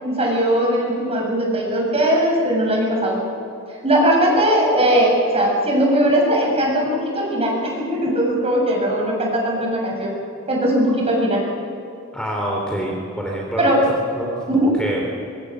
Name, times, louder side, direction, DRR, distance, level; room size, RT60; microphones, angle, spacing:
voice 1, 0.0-3.2 3.7-10.1 10.5-11.4 13.6-13.9 14.5-14.7, right 1 dB, 30° right, -2 dB, 7.3 m, -19 dB
voice 2, 12.1-13.8 14.1-15.0, right 1 dB, 5° left, -1 dB, 3.3 m, -26 dB
25.0 x 24.0 x 6.3 m, 2.8 s
head